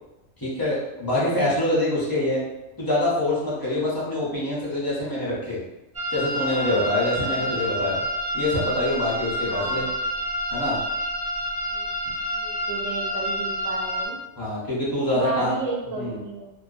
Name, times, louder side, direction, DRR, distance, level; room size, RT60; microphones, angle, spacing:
voice 1, 0.4-2.4 2.8-5.6 6.1-8.0 8.3-9.9 10.5-10.8 14.4-15.6 16.0-16.2, left 1 dB, 35° left, -7 dB, 0.3 m, -25 dB
sound 1, 5.9-14.1, equal, 35° right, 0.7 m, -28 dB
voice 2, 9.5-10.0 11.7-11.9 12.3-14.2 15.1-16.5, right 3 dB, 75° right, -1 dB, 0.9 m, -33 dB
2.4 x 2.3 x 2.3 m, 0.97 s
omnidirectional pair, 1.3 m